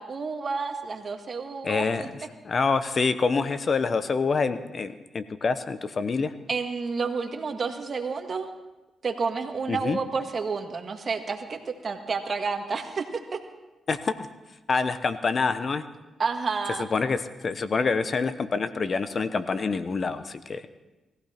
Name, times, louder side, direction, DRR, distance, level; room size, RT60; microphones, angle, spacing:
voice 1, 0.0-2.1 6.5-8.5 9.0-13.4 16.2-16.9, right 4 dB, 50° right, 6 dB, 1.7 m, -30 dB
voice 2, 1.6-2.1 2.4-6.3 9.7-10.0 13.9-14.1 14.7-15.8 16.8-20.6, left 4 dB, 50° left, 12 dB, 0.9 m, -26 dB
20.0 x 15.0 x 4.4 m, 1.1 s
cardioid pair, 70°, 0 cm